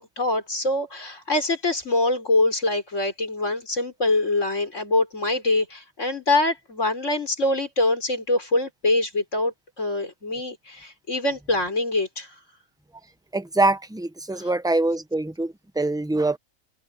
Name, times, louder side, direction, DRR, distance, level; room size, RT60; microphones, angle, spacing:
voice 1, 0.0-12.3 14.4-14.5, left 2 dB, 55° left, 5.3 m, -24 dB
voice 2, 13.3-16.4, right 2 dB, 5° right, 0.6 m, -24 dB
omnidirectional pair, 1.5 m